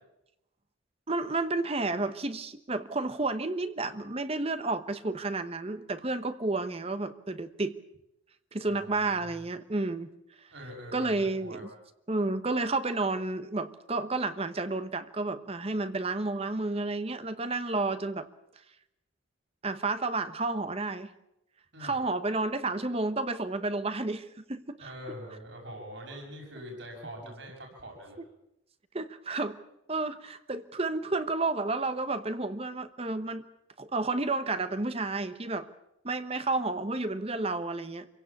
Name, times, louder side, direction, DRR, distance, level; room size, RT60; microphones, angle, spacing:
voice 1, 1.1-7.7 8.5-10.1 10.9-11.7 12.1-18.3 19.6-21.1 21.8-24.9 28.2-28.3 28.9-29.6 29.9-33.4 33.8-35.7 36.0-38.1, right 3 dB, 30° right, 11 dB, 1.0 m, -31 dB
voice 2, 8.8-9.3 10.5-11.6 21.7-22.0 24.8-28.2, equal, 65° right, 0 dB, 6.2 m, -44 dB
26.5 x 17.0 x 8.4 m, 0.86 s
head